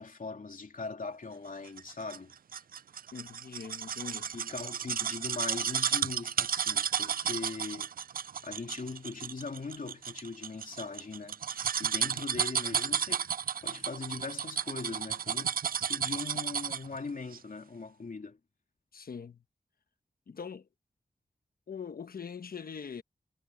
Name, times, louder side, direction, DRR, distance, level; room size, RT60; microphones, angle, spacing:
voice 1, 0.0-2.3 4.3-7.9 8.4-13.2 13.6-15.6 15.9-18.4, left 4 dB, 65° left, 3.0 m, -40 dB
sound 1, 1.8-17.0 17.3-17.4, right 8 dB, 75° right, 0.4 m, -33 dB
voice 2, 3.1-4.3 18.9-19.4 20.3-20.7 21.7-23.0, left 6 dB, 80° left, 1.1 m, -42 dB
wide cardioid pair, 55°, 15 cm